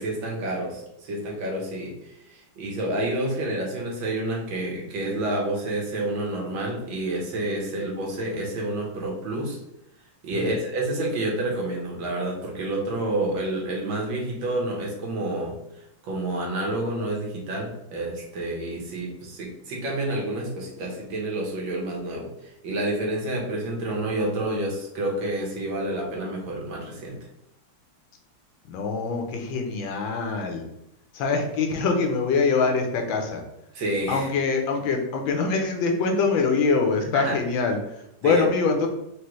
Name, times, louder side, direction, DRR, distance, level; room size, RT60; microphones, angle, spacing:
voice 1, 0.0-9.6 10.2-22.3 22.6-27.2 33.7-34.3 37.1-37.4 38.2-38.4, right 1 dB, 80° right, -1 dB, 1.8 m, -29 dB
voice 2, 28.7-30.6 31.1-33.4 34.1-38.9, left 4 dB, 80° left, 3 dB, 1.5 m, -24 dB
4.9 x 2.9 x 3.1 m, 0.82 s
omnidirectional pair, 2.1 m